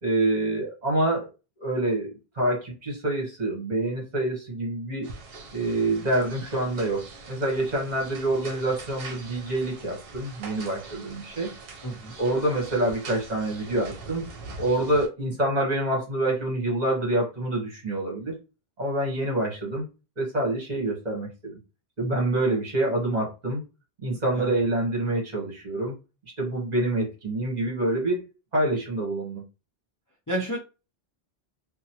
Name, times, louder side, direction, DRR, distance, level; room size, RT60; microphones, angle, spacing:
voice 1, 0.0-1.3 1.6-5.1 5.5-11.5 12.2-14.3 14.6-18.4 18.8-19.9 20.2-21.6 22.0-23.6 24.0-25.9 26.4-28.2 28.5-29.4, right 1 dB, 45° right, -2 dB, 1.2 m, -26 dB
sound 1, 5.0-15.1, right 3 dB, 70° right, 0.8 m, -43 dB
voice 2, 11.8-12.2 24.3-24.5 30.3-30.6, right 1 dB, 25° left, -2 dB, 0.5 m, -30 dB
2.8 x 2.0 x 2.7 m, 0.30 s
omnidirectional pair, 1.0 m